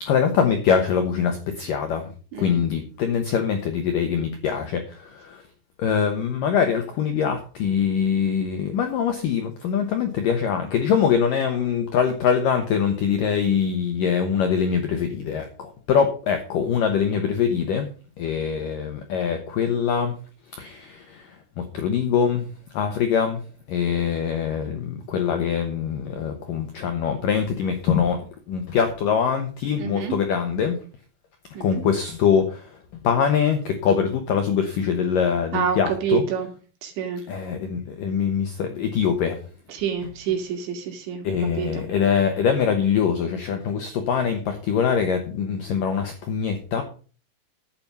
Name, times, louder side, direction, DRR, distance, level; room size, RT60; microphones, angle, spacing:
voice 1, 0.0-2.1 2.4-5.4 5.8-17.9 18.2-20.2 20.5-23.4 23.7-28.2 28.5-30.8 31.6-36.2 37.3-39.4 40.0-40.1 41.2-46.8, left 7 dB, 75° left, 6 dB, 2.0 m, -23 dB
voice 2, 2.3-2.6 29.8-30.1 31.5-31.8 35.5-36.5 36.8-37.2 39.7-41.9, right 8 dB, 70° right, 3 dB, 4.7 m, -28 dB
12.0 x 8.7 x 5.5 m, 0.39 s
omnidirectional pair, 5.5 m